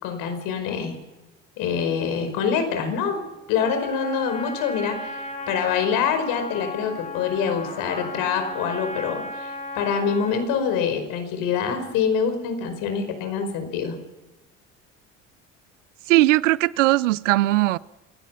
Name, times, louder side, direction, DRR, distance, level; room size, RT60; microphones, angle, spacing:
voice 1, 0.0-1.0 1.6-3.2 3.5-5.2 5.5-14.0, left 6 dB, 65° left, 5.3 m, -25 dB
Trumpet, 3.6-10.5, left 2 dB, 20° left, 5.7 m, -35 dB
voice 2, 16.1-17.8, right 18 dB, 80° right, 0.6 m, -19 dB
27.5 x 16.5 x 5.8 m
hypercardioid pair, 65°, 37 cm